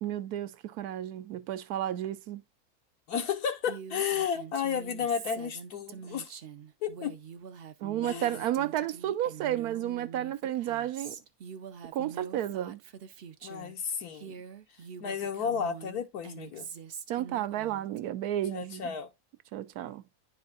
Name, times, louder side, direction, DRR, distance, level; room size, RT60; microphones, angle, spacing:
voice 1, 0.0-2.4 7.8-11.2 11.9-12.8 17.1-18.9 19.5-20.0, right 12 dB, 80° right, 1.2 m, -32 dB
voice 2, 3.1-6.3 6.8-7.2 8.0-8.3 13.4-14.4 15.0-16.7 18.5-19.1, left 7 dB, 80° left, 1.5 m, -32 dB
Female speech woman speaking, 3.7-13.8 14.1-18.0, right 7 dB, 55° right, 0.7 m, -45 dB
10.5 x 4.5 x 2.4 m
omnidirectional pair, 1.6 m